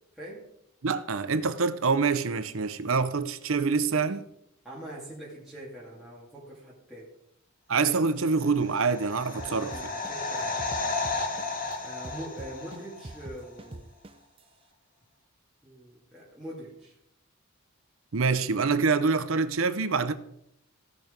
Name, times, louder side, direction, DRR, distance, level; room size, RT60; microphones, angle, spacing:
voice 1, 0.1-0.5 3.9-4.1 4.6-7.1 9.3-10.6 11.8-13.9 15.6-17.0, right 1 dB, ahead, 2.4 m, -43 dB
voice 2, 0.8-4.2 7.7-9.7 18.1-20.1, right 4 dB, 65° right, 0.7 m, -26 dB
sound 1, 8.4-13.2 13.5-13.6, left 3 dB, 40° left, 1.5 m, -33 dB
sound 2, 9.4-11.7 12.0-14.4, right 2 dB, 25° right, 0.5 m, -43 dB
16.0 x 6.2 x 5.2 m
head